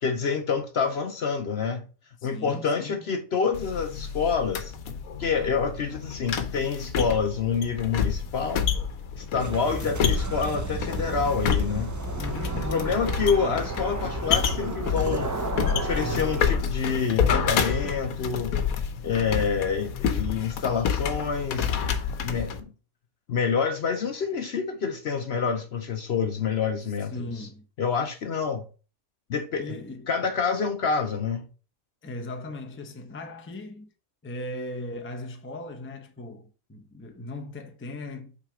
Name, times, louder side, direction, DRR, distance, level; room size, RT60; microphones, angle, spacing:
voice 1, 0.0-1.9 2.2-4.7 5.2-8.7 9.2-11.9 12.5-15.4 15.7-18.5 19.0-22.7 23.3-27.5 27.8-28.7 29.3-29.7 30.1-31.5, left 6 dB, 55° left, 0.9 m, -27 dB
voice 2, 2.2-3.1 12.2-13.0 13.4-13.7 27.1-27.7 29.6-30.1 32.0-33.9 34.2-38.3, left 1 dB, 10° left, 0.6 m, -38 dB
sound 1, 3.5-22.6, left 7 dB, 80° left, 1.2 m, -29 dB
sound 2, 9.4-16.5, right 2 dB, 30° right, 0.3 m, -32 dB
5.9 x 4.1 x 4.8 m
omnidirectional pair, 1.5 m